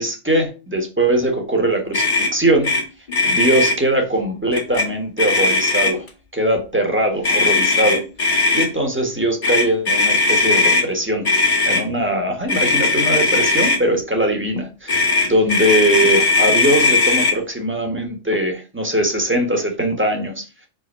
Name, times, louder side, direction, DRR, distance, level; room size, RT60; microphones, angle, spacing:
voice 1, 0.0-2.7 3.2-6.0 6.3-8.0 8.5-11.3 11.6-20.7, right 1 dB, 10° right, 3 dB, 1.5 m, -21 dB
Motor vehicle (road), 1.9-2.3 2.6-2.8 3.1-3.8 4.5-4.9 5.2-6.1 7.2-8.7 9.4-10.8 11.2-11.8 12.5-13.8 14.9-17.3, left 3 dB, 40° left, 1.7 m, -18 dB
5.0 x 4.0 x 5.5 m, 0.32 s
omnidirectional pair, 1.3 m